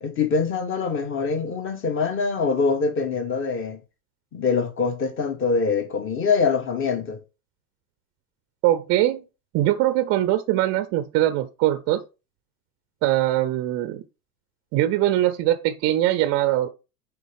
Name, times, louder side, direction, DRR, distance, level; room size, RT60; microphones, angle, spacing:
voice 1, 0.0-3.8 4.3-7.2, left 5 dB, 25° left, 1.4 m, -24 dB
voice 2, 8.6-9.2 9.5-12.0 13.0-14.0 14.7-16.7, right 14 dB, 35° right, 0.6 m, -22 dB
9.1 x 3.5 x 3.5 m
figure-of-eight pair, 90°, 47 cm